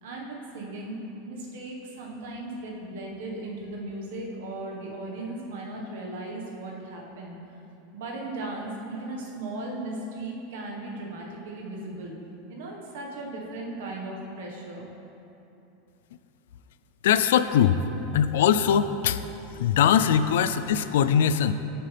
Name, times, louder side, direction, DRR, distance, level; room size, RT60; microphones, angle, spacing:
voice 1, 0.0-7.4 7.9-12.1 12.5-14.9, right 2 dB, 75° right, -1 dB, 1.4 m, -37 dB
voice 2, 17.0-17.8 18.1-19.2 19.6-21.5, left 8 dB, 85° left, 12 dB, 0.3 m, -21 dB
9.1 x 6.7 x 3.4 m, 2.9 s
supercardioid pair, 170°, 0 cm